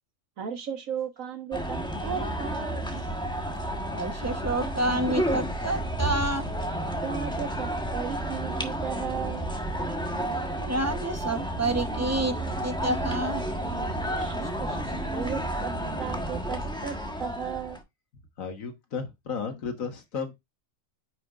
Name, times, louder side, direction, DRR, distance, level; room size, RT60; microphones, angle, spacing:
voice 1, 0.4-2.8 7.0-9.5 14.1-14.8 15.1-17.8, right 7 dB, 85° right, 1.8 m, -35 dB
sound 1, 1.5-17.8, right 1 dB, 5° left, 1.2 m, -31 dB
voice 2, 3.9-6.5 10.6-13.5 14.3-14.4, right 1 dB, 15° right, 0.9 m, -29 dB
voice 3, 18.4-20.3, left 6 dB, 85° left, 1.9 m, -34 dB
9.5 x 5.4 x 2.5 m
omnidirectional pair, 1.4 m